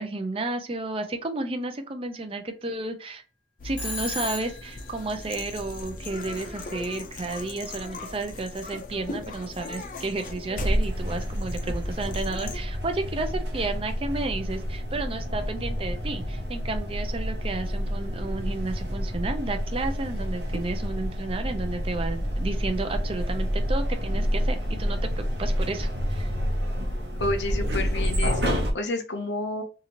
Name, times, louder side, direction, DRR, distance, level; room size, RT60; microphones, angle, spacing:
voice 1, 0.0-3.2 3.6-26.3, right 2 dB, 30° right, 7 dB, 0.5 m, -32 dB
sound 1, 3.6-12.6, left 1 dB, 50° left, 0.5 m, -34 dB
Telephone, 3.8-4.9, left 3 dB, 5° left, 0.9 m, -34 dB
sound 2, 10.5-28.7, equal, 80° right, 0.9 m, -29 dB
voice 2, 27.2-29.6, left 2 dB, 80° left, 4 dB, 0.7 m, -30 dB
2.8 x 2.5 x 2.8 m, 0.35 s
head